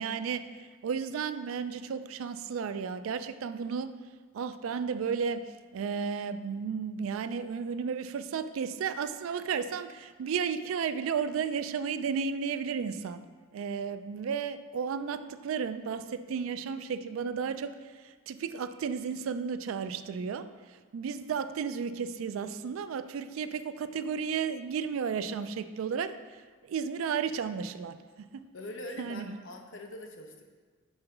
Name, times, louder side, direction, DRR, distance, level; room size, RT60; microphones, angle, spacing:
voice 1, 0.0-4.0 4.3-13.2 13.5-26.2 26.6-28.0 28.3-28.5 29.0-29.4, right 6 dB, 80° right, 11 dB, 0.3 m, -33 dB
voice 2, 28.5-30.4, left 1 dB, 65° left, 3 dB, 0.7 m, -43 dB
5.4 x 3.9 x 5.7 m, 1.5 s
head